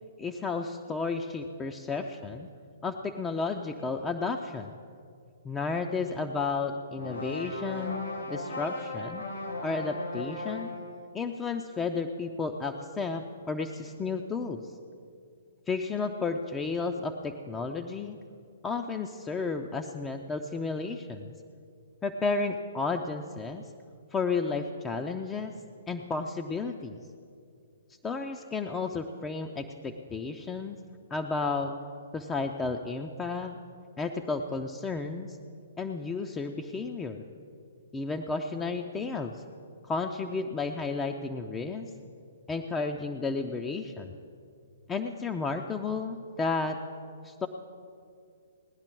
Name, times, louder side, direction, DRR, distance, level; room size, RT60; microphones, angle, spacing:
voice 1, 0.2-2.5 2.8-4.7 5.4-9.2 9.6-10.7 11.1-14.6 15.7-18.2 18.6-21.3 22.0-23.6 24.1-25.5 25.9-27.0 28.0-30.8 31.1-31.7 32.1-33.6 34.0-35.4 35.8-37.2 37.9-39.4 39.8-41.9 42.5-44.1 44.9-46.8 47.2-47.5, left 4 dB, 15° left, 4 dB, 0.5 m, -32 dB
sound 1, 7.0-10.9, left 2 dB, 75° left, 3.0 m, -37 dB
18.0 x 10.5 x 4.6 m, 2.4 s
figure-of-eight pair, 120°, 0 cm